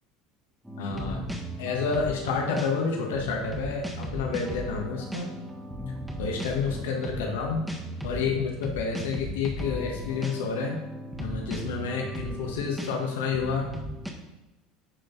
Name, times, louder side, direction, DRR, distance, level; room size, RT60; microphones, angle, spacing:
sound 1, 0.6-14.1, equal, 5° right, 1.6 m, -36 dB
voice 1, 0.8-1.2 1.6-5.3 6.2-7.6 8.0-10.8 11.2-13.7, left 5 dB, 70° left, 1 dB, 1.5 m, -29 dB
10.5 x 5.2 x 4.0 m, 1.0 s
hypercardioid pair, 70°, 0 cm